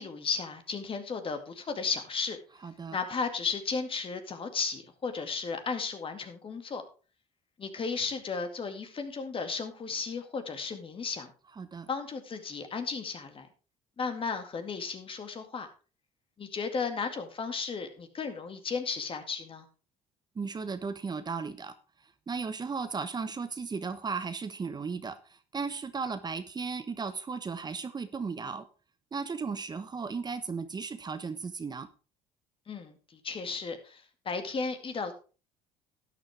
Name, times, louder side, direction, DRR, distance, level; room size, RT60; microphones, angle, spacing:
voice 1, 0.0-2.4 2.9-6.8 7.6-11.3 11.9-13.5 14.0-15.7 16.4-19.7 32.7-35.1, left 5 dB, 40° left, 7 dB, 2.1 m, -34 dB
voice 2, 2.6-3.0 11.6-11.9 20.3-28.7 29.1-31.9, right 5 dB, 30° right, 11 dB, 1.0 m, -36 dB
12.5 x 9.5 x 3.4 m, 0.34 s
supercardioid pair, 80°, 14 cm